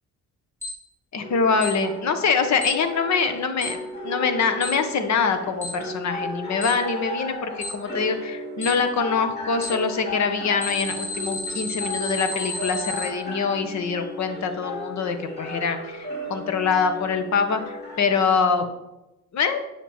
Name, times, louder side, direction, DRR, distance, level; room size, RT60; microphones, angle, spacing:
Alarm, 0.6-0.7 1.6-1.7 2.6-2.7 3.6-3.7 4.6-4.7 5.6-5.7 6.6-6.7 7.6-7.7 8.6-8.7 9.6-9.7 10.6-13.0, left 2 dB, 10° left, 3.7 m, -31 dB
voice 1, 1.1-18.7 19.3-19.6, left 5 dB, 65° left, 8 dB, 1.4 m, -24 dB
sound 1, 1.2-18.2, left 1 dB, 35° left, 3.3 m, -35 dB
10.0 x 6.6 x 4.5 m, 0.94 s
cardioid pair, 90°, 30 cm